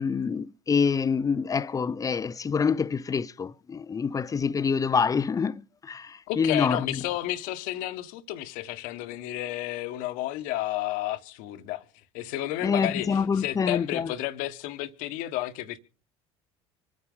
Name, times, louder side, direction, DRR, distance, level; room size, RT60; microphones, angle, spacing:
voice 1, 0.0-7.0 12.6-14.1, left 6 dB, 25° left, 0.6 m, -26 dB
voice 2, 6.3-11.8 12.1-15.8, left 15 dB, 65° left, 1.2 m, -32 dB
25.5 x 9.5 x 3.7 m
hypercardioid pair, 70°, 14 cm